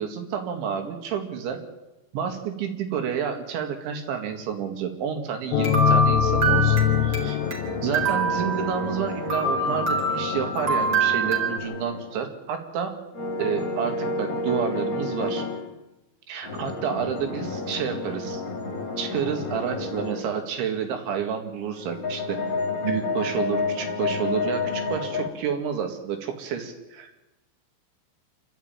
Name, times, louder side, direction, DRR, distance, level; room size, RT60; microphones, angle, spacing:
voice 1, 0.0-1.6 2.1-6.8 7.0-7.4 7.8-13.0 13.4-15.4 16.3-18.4 19.0-22.4 22.8-27.2, right 7 dB, 70° right, 5 dB, 4.4 m, -30 dB
sound 1, 5.5-9.1, left 12 dB, 75° left, 2.7 m, -24 dB
sound 2, 5.6-7.6 7.9-9.0 9.3-11.6, right 4 dB, 25° right, 3.5 m, -25 dB
sound 3, 6.2-12.3 13.1-15.7 16.4-20.2 21.5-25.3, left 3 dB, 35° left, 2.1 m, -31 dB
27.5 x 12.5 x 9.0 m, 1.0 s
omnidirectional pair, 5.7 m